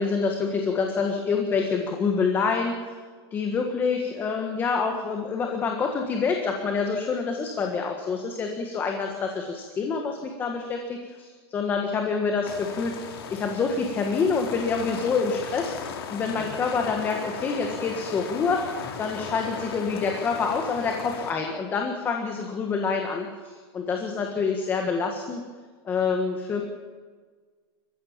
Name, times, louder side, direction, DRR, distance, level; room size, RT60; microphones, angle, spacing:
voice 1, 0.0-3.0 3.3-13.0 13.3-25.4 25.8-26.6, left 5 dB, 15° left, 3 dB, 1.6 m, -27 dB
sound 1, 12.4-21.3, left 6 dB, 65° left, 3.6 m, -37 dB
29.5 x 15.0 x 7.4 m, 1.5 s
supercardioid pair, 175°, 13 cm